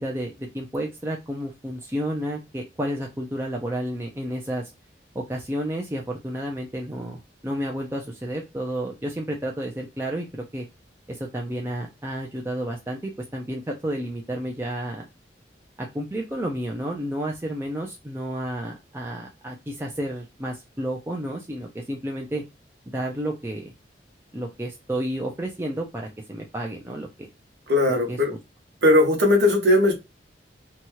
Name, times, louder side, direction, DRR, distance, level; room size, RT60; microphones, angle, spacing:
voice 1, 0.0-4.7 5.1-10.7 11.1-15.1 15.8-22.4 22.9-23.7 24.3-27.3 27.9-28.2, right 1 dB, 15° right, 0 dB, 0.4 m, -31 dB
voice 2, 27.7-28.3 28.8-29.9, left 1 dB, 75° right, 1 dB, 1.0 m, -18 dB
2.8 x 2.3 x 2.8 m, 0.24 s
head